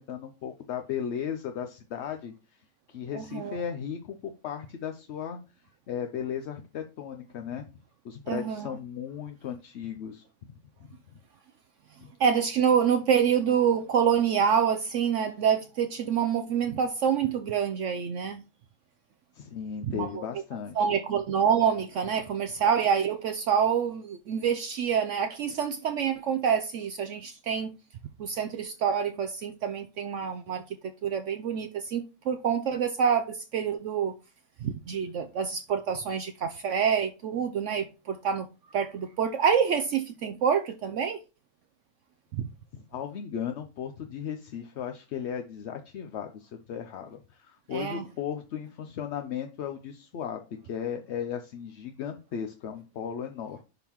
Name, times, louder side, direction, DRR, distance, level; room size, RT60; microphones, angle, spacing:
voice 1, 0.0-2.3 2.9-5.4 5.9-7.6 8.0-10.6 12.0-12.1 19.3-20.8 42.7-53.6, left 8 dB, 60° left, 0.7 m, -36 dB
voice 2, 3.1-3.6 8.3-8.7 12.2-18.4 19.8-20.2 20.8-27.7 28.2-30.6 31.0-34.2 34.6-41.2 42.3-42.5 47.7-48.0, right 7 dB, 65° right, 0.8 m, -27 dB
10.5 x 3.7 x 2.9 m
omnidirectional pair, 1.6 m